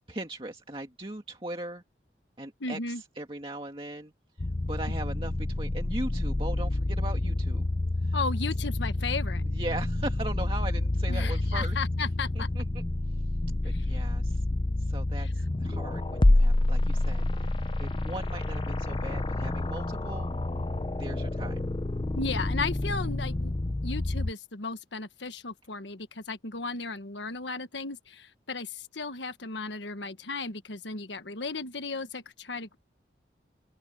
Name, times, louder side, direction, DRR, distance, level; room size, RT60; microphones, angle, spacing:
voice 1, 0.1-1.8 2.4-4.1 4.4-7.7 8.0-8.2 9.5-11.8 12.3-12.8 13.6-14.4 14.8-20.3 21.0-21.6, right 1 dB, 30° right, 2.2 m, -39 dB
voice 2, 2.6-3.0 8.1-9.4 11.1-12.5 13.6-13.8 22.2-23.5 23.8-32.8, left 4 dB, 90° left, 1.4 m, -35 dB
sound 1, 4.4-24.3, left 2 dB, 25° left, 0.5 m, -28 dB
open air
head